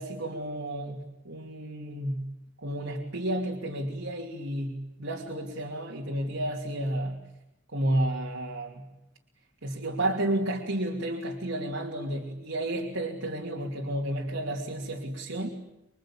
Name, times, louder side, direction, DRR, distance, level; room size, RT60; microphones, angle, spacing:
voice 1, 0.0-2.3 2.6-7.3 7.7-8.9 9.6-15.5, right 1 dB, 85° right, 0 dB, 2.9 m, -31 dB
27.0 x 22.5 x 8.8 m, 0.88 s
head